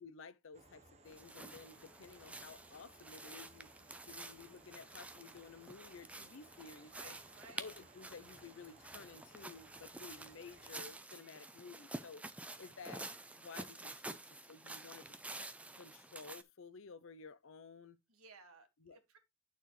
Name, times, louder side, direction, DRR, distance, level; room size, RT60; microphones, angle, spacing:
voice 1, 0.0-3.7 4.1-7.2 7.5-12.2 12.6-13.1 13.4-14.2 14.5-15.5 15.8-18.0 18.8-19.2, left 4 dB, 65° left, 0.6 m, -54 dB
sound 1, 0.5-10.9, right 2 dB, 30° right, 0.9 m, -63 dB
sound 2, 1.1-16.4, right 2 dB, 5° right, 0.4 m, -50 dB
voice 2, 6.9-7.7 18.1-19.2, right 4 dB, 85° right, 1.8 m, -58 dB
9.0 x 6.3 x 3.2 m
head